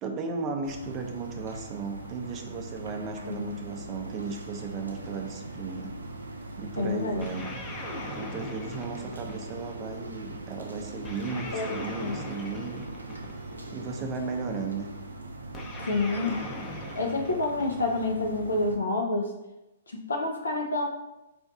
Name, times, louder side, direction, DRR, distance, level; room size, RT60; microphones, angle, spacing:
voice 1, 0.0-5.9 6.6-7.5 8.1-12.9 13.7-14.9, right 4 dB, 30° right, 3 dB, 0.5 m, -35 dB
sound 1, 0.6-18.8, right 2 dB, 90° right, 0.4 m, -41 dB
voice 2, 3.2-3.6 6.8-7.3 11.5-11.7 12.0-12.2 15.9-16.4 16.9-19.3 19.9-20.8, left 2 dB, 85° left, 3 dB, 0.4 m, -28 dB
sound 2, 7.2-9.8 11.0-13.6 15.5-18.1, left 2 dB, 20° left, 0.5 m, -40 dB
2.5 x 2.3 x 3.7 m, 0.95 s
hypercardioid pair, 125°, 0 cm